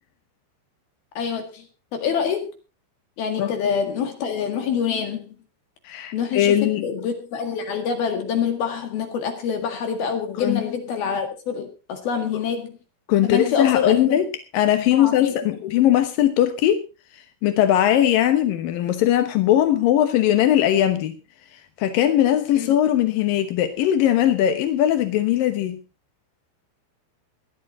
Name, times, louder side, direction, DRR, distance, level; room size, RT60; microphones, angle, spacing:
voice 1, 1.1-1.7 1.9-2.5 3.2-5.4 6.1-12.8 13.2-14.2 14.9-15.3 15.6-15.7 22.5-22.8, left 7 dB, 60° left, 3.3 m, -26 dB
voice 2, 5.9-6.8 10.4-10.6 13.1-14.3 14.5-16.8 17.4-21.2 21.8-25.8, left 11 dB, 80° left, 2.0 m, -19 dB
18.0 x 12.0 x 3.9 m
omnidirectional pair, 5.7 m